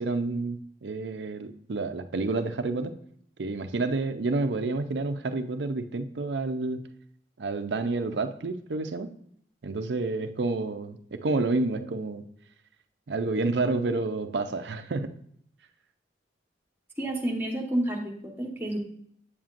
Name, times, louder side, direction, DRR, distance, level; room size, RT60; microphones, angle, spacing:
voice 1, 0.0-3.0 3.4-6.8 7.4-9.1 9.6-12.2 13.1-15.1, right 3 dB, 80° right, 9 dB, 0.6 m, -29 dB
voice 2, 17.0-18.8, right 1 dB, 10° right, 0 dB, 1.1 m, -30 dB
8.5 x 7.3 x 2.5 m, 0.67 s
head